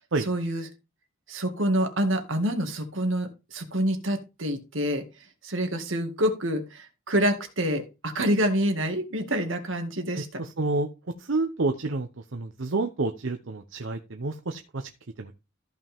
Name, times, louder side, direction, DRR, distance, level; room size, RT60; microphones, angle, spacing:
voice 1, 0.2-0.7 1.3-5.0 5.4-10.4, equal, 90° right, 6 dB, 2.0 m, -27 dB
voice 2, 10.1-10.9 11.2-14.9 15.2-15.3, right 3 dB, 75° right, 6 dB, 0.9 m, -29 dB
14.0 x 5.6 x 3.6 m, 0.28 s
head